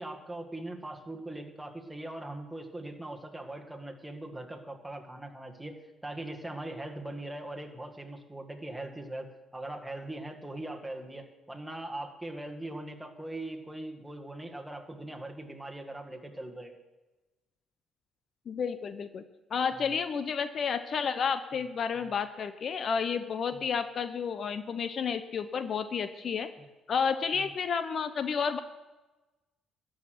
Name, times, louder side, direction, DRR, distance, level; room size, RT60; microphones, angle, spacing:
voice 1, 0.0-9.3 9.5-16.7 19.7-19.9 22.0-22.1 23.5-23.6 27.3-27.5, right 1 dB, 5° right, 2 dB, 1.9 m, -41 dB
voice 2, 18.5-19.2 19.5-26.5 26.9-28.6, left 6 dB, 50° left, 11 dB, 0.7 m, -31 dB
13.0 x 6.4 x 9.5 m, 1.1 s
cardioid pair, 85°, 0 cm